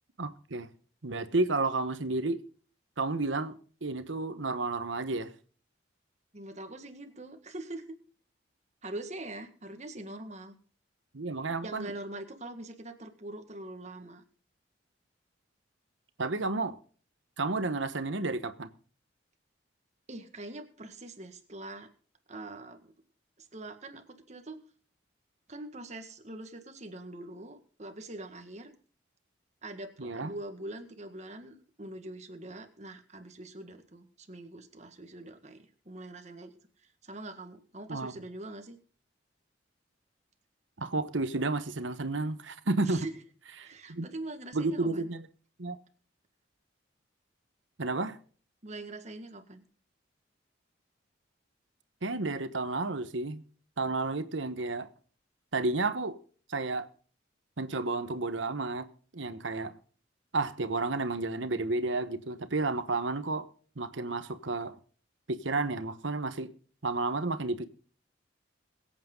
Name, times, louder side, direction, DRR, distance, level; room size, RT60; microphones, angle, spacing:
voice 1, 0.2-0.7 1.0-2.4 3.0-3.6 3.8-5.3 11.1-11.9 16.2-16.7 17.4-18.7 30.0-30.3 37.9-38.1 40.8-43.1 43.6-44.1 44.5-45.2 45.6-45.8 47.8-48.2 52.0-53.4 53.8-54.9 55.5-56.2 56.5-56.9 57.6-58.9 59.1-59.7 60.3-63.5 63.8-64.8 65.3-66.5 66.8-67.7, right 3 dB, 80° right, 1.1 m, -31 dB
voice 2, 6.3-8.0 8.8-10.5 11.6-14.2 20.1-21.9 22.3-22.9 23.4-24.6 25.5-28.7 29.6-38.8 42.8-43.1 43.5-45.1 48.6-49.6, right 2 dB, 35° right, 1.7 m, -43 dB
22.5 x 8.7 x 3.8 m
head